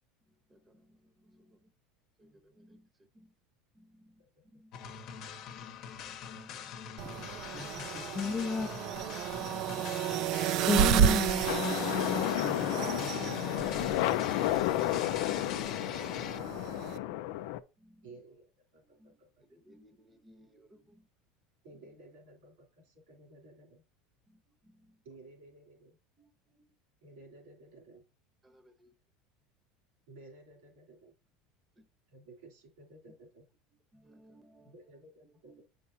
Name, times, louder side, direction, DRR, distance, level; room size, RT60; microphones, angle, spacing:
voice 1, 0.3-1.7 2.2-2.9 3.1-3.3 3.7-4.2 4.5-5.3 6.0-7.4 17.0-17.3 17.8-18.1 18.8-21.1 24.3-25.0 26.2-26.6 28.4-28.9 31.8-31.9 33.9-35.0 35.2-35.6, equal, 20° right, 0.9 m, -62 dB
sound 1, 4.7-16.4, left 8 dB, 55° left, 0.9 m, -44 dB
voice 2, 4.8-5.3 7.1-8.3 18.0-19.6 21.6-23.8 25.0-26.0 27.0-28.0 30.1-31.1 32.1-33.5 34.6-35.6, right 2 dB, 85° right, 3.1 m, -55 dB
sound 2, 7.0-17.0, right 9 dB, 60° right, 0.4 m, -32 dB
voice 3, 7.9-9.0 10.7-14.2, left 4 dB, 20° left, 0.5 m, -35 dB
sound 3, 11.5-17.6, left 15 dB, 70° left, 0.4 m, -32 dB
8.4 x 5.1 x 2.7 m
supercardioid pair, 110°, 0 cm